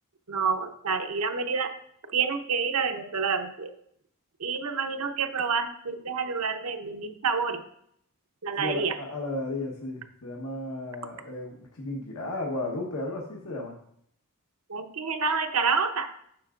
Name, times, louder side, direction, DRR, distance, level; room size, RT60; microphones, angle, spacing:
voice 1, 0.3-1.7 2.1-3.7 4.4-7.6 8.4-9.0 14.7-16.1, right 5 dB, 75° right, 7 dB, 0.8 m, -28 dB
voice 2, 8.6-13.7, left 2 dB, 90° left, -2 dB, 1.2 m, -34 dB
9.6 x 6.6 x 2.5 m, 0.69 s
head